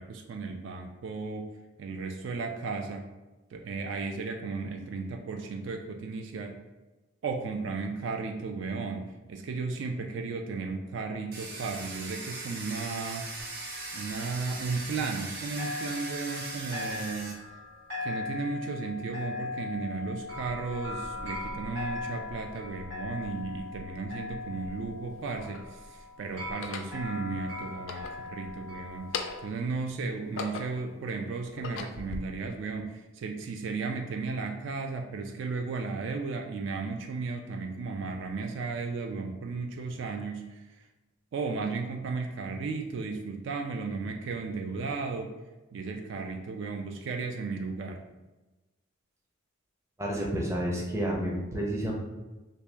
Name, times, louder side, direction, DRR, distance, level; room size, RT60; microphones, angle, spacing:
voice 1, 0.0-1.5 1.8-3.1 3.5-6.6 7.2-13.3 13.9-17.4 18.0-40.9 41.3-45.3 45.7-48.0, right 4 dB, 65° right, 3 dB, 0.3 m, -35 dB
Domestic sounds home sounds, 11.3-17.3, right 3 dB, 50° right, 0.9 m, -39 dB
sound 1, 13.4-15.3 15.6-29.5, left 3 dB, 80° right, 1.3 m, -39 dB
sound 2, 24.0-24.1 24.9-25.7 26.5-27.0 27.7-28.6 29.0-29.6 30.1-30.9 31.4-32.2, left 5 dB, 70° left, 0.3 m, -38 dB
voice 2, 50.0-51.9, equal, 15° right, -3 dB, 0.5 m, -30 dB
3.0 x 2.7 x 3.3 m, 1.1 s
head